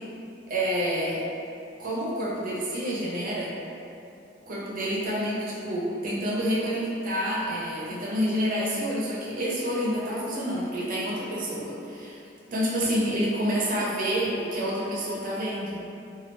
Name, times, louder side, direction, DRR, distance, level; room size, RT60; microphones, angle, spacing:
voice 1, 0.5-1.2 1.8-3.5 4.5-12.2 12.5-15.8, equal, 45° right, -6 dB, 0.7 m, -28 dB
3.1 x 2.3 x 3.0 m, 2.7 s
head